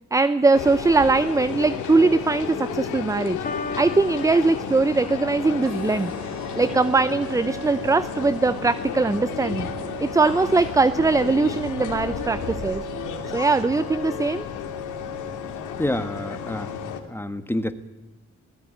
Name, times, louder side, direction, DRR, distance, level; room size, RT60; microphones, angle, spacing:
voice 1, 0.1-3.4 3.8-6.1 6.6-9.7 10.0-12.8 13.3-14.5, right 3 dB, 10° right, 15 dB, 0.6 m, -21 dB
sound 1, 0.5-17.0, left 7 dB, 85° left, 2.4 m, -32 dB
Piano, 3.4-5.4, left 3 dB, 30° left, 2.3 m, -36 dB
sound 2, 5.6-13.6, right 5 dB, 65° right, 2.7 m, -39 dB
voice 2, 15.8-16.7 17.1-17.7, left 1 dB, 5° left, 9 dB, 1.6 m, -27 dB
18.5 x 15.0 x 9.3 m, 1.1 s
cardioid pair, 90°, 30 cm